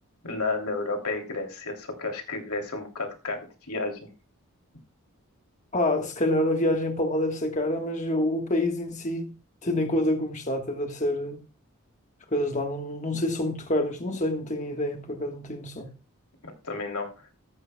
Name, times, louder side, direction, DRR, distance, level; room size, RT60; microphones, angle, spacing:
voice 1, 0.2-4.1 16.4-17.3, left 3 dB, 85° left, 3.0 m, -32 dB
voice 2, 5.7-9.3 9.6-11.4 12.3-15.9, left 1 dB, 35° left, 1.4 m, -27 dB
14.5 x 13.5 x 2.3 m
head